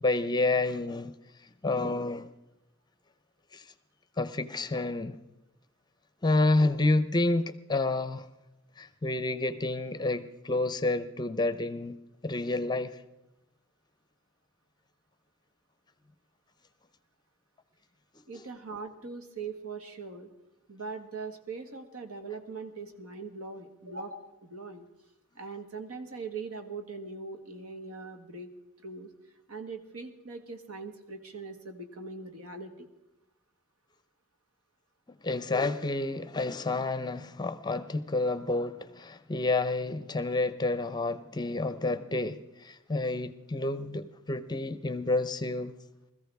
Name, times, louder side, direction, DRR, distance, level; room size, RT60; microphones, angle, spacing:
voice 1, 0.0-1.1 1.6-2.2 3.5-3.6 4.2-5.2 6.2-8.3 8.8-12.0 12.2-12.9 18.3-18.4 35.2-45.8, left 2 dB, 20° left, 0.6 m, -29 dB
voice 2, 18.3-20.3 20.7-24.9 25.3-28.5 28.8-29.1 29.5-32.9, right 4 dB, 80° right, 1.7 m, -41 dB
21.0 x 14.5 x 3.5 m
head